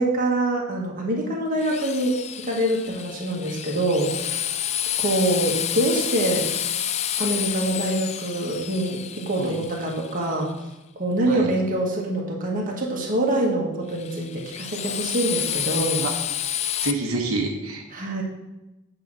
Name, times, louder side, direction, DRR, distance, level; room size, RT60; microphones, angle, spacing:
voice 1, 0.0-4.5 5.0-6.5 7.2-10.5 10.9-16.0 17.9-18.2, right 1 dB, 40° right, -2 dB, 1.6 m, -25 dB
Drill, 1.6-10.5 13.9-16.9, left 10 dB, 30° left, 0.3 m, -29 dB
voice 2, 16.8-17.8, right 2 dB, 90° right, 1 dB, 1.1 m, -27 dB
8.2 x 4.0 x 6.2 m, 0.97 s
head